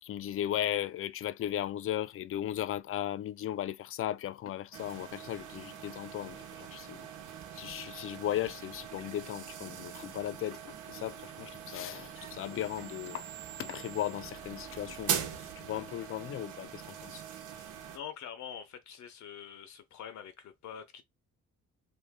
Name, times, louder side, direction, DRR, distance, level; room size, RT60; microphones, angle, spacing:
voice 1, 0.0-7.1 7.5-13.3 13.6-15.2 15.6-17.2, left 12 dB, 45° left, 0.4 m, -36 dB
sound 1, 4.7-18.0, right 8 dB, 85° right, 1.0 m, -42 dB
sound 2, 7.4-15.5, right 10 dB, 45° right, 1.1 m, -54 dB
voice 2, 17.9-21.0, left 8 dB, 70° left, 0.7 m, -45 dB
2.7 x 2.5 x 3.6 m
cardioid pair, 90°, 30 cm